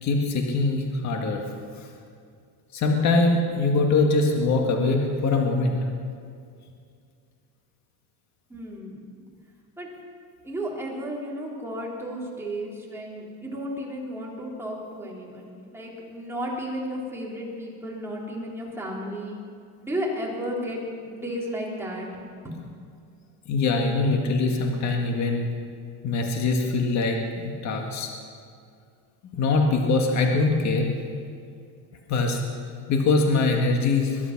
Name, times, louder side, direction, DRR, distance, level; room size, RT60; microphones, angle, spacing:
voice 1, 0.0-1.4 2.7-5.8 23.5-25.5 26.0-27.2 27.6-28.1 29.3-30.9 32.1-32.4 32.9-34.2, left 3 dB, 35° left, 2 dB, 1.8 m, -22 dB
voice 2, 8.5-9.1 9.8-9.9 10.4-19.3 19.8-22.1 22.4-22.7, equal, 5° right, -4 dB, 3.4 m, -33 dB
22.0 x 11.0 x 6.0 m, 2.3 s
supercardioid pair, 135°, 45 cm